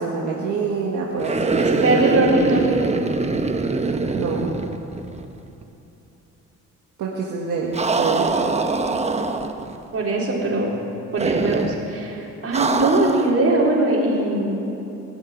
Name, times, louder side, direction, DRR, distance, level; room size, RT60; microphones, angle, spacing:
voice 1, 0.0-2.0 4.1-4.5 7.0-8.5, right 4 dB, 75° right, -3 dB, 1.8 m, -26 dB
sound 1, 1.2-5.4 5.6-5.7 7.7-9.8 11.2-11.8 12.5-13.4, right 3 dB, 20° right, 0.9 m, -23 dB
voice 2, 1.6-3.1 9.9-10.7 11.1-14.6, right 2 dB, 50° right, -3 dB, 4.0 m, -21 dB
20.5 x 7.2 x 9.6 m, 2.9 s
cardioid pair, 90°, 30 cm